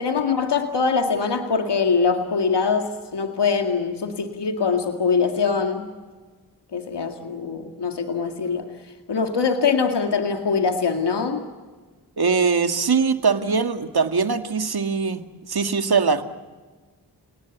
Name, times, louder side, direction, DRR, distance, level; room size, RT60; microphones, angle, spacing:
voice 1, 0.0-5.9 6.7-8.7 9.1-11.5, left 5 dB, 75° left, 5 dB, 2.2 m, -23 dB
voice 2, 12.2-16.2, right 5 dB, 60° right, 7 dB, 2.0 m, -22 dB
30.0 x 19.0 x 8.1 m, 1.4 s
cardioid pair, 45°, 42 cm